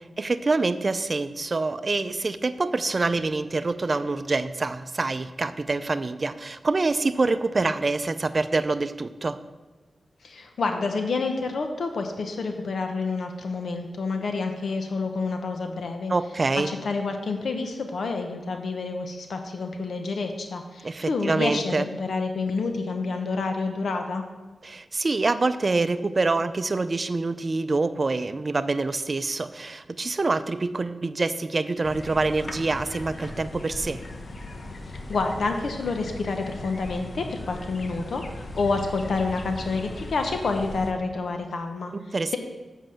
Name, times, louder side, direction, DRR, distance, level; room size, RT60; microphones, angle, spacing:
voice 1, 0.2-9.4 16.1-16.7 20.8-21.9 24.6-34.0 41.9-42.4, right 3 dB, 45° right, 12 dB, 0.5 m, -26 dB
voice 2, 10.2-16.1 16.6-24.2 35.1-38.2 38.5-41.9 42.3-42.4, left 3 dB, 75° left, 5 dB, 0.9 m, -28 dB
sound 1, 31.8-40.9, left 2 dB, 50° left, 1.0 m, -38 dB
7.6 x 5.5 x 7.6 m, 1.2 s
cardioid pair, 70°, 0 cm